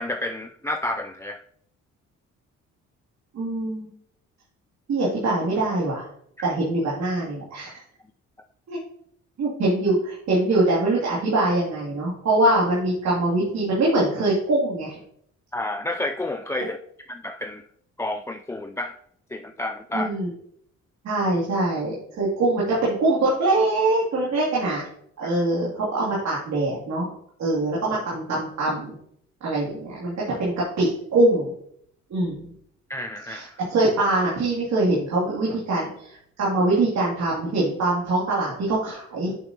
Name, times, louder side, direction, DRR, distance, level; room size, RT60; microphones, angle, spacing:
voice 1, 0.0-1.4 6.4-6.5 15.5-16.8 17.1-17.6 18.0-19.0 19.3-20.1 32.9-33.6, left 1 dB, 10° left, 6 dB, 0.4 m, -30 dB
voice 2, 3.3-3.9 4.9-6.1 6.4-7.8 8.7-8.8 9.4-15.0 19.9-20.3 21.0-24.9 25.2-27.1 27.4-28.9 29.4-30.1 30.4-31.5 32.1-32.5 33.3-39.4, right 2 dB, 65° right, -6 dB, 2.8 m, -23 dB
8.3 x 6.8 x 2.9 m, 0.67 s
cardioid pair, 90°, 30 cm